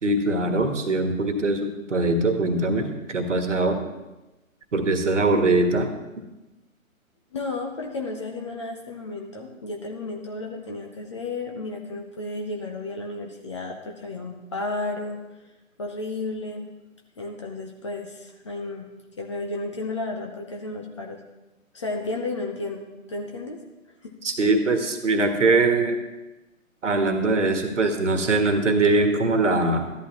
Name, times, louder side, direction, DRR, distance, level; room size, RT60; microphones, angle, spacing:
voice 1, 0.0-3.8 4.7-5.9 24.2-26.0 26.8-29.9, right 2 dB, 60° right, 6 dB, 1.6 m, -22 dB
voice 2, 7.3-15.2 15.8-16.7 17.2-18.9 19.2-21.2 21.7-23.6 24.0-24.1, left 2 dB, 20° left, 1 dB, 0.6 m, -33 dB
14.0 x 11.0 x 3.0 m, 1.0 s
figure-of-eight pair, 135°, 41 cm